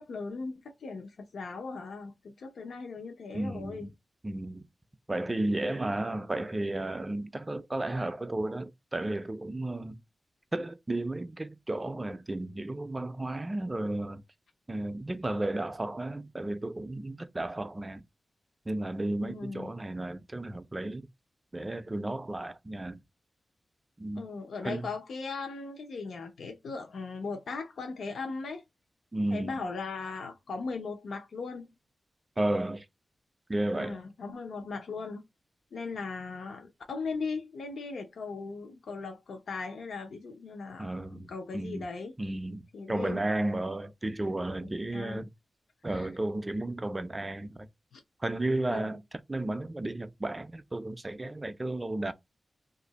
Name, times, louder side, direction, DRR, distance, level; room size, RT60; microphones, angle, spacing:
voice 1, 0.0-3.9 19.2-19.7 24.2-28.6 29.3-31.7 33.8-35.2 35.7-42.1 42.7-43.3 44.6-45.3 45.9-46.1 47.9-48.0 48.7-49.0, left 4 dB, 85° left, 0.6 m, -38 dB
voice 2, 3.3-3.9 4.2-4.6 5.1-10.0 10.5-14.2 14.7-18.0 18.7-21.1 21.5-23.0 24.0-24.2 24.6-24.9 29.1-29.6 32.4-32.9 33.5-34.0 40.8-41.9 42.2-45.3 45.8-47.7 48.2-49.0 49.3-52.1, right 1 dB, 20° right, 0.3 m, -33 dB
2.7 x 2.5 x 4.0 m
wide cardioid pair, 145°, 0 cm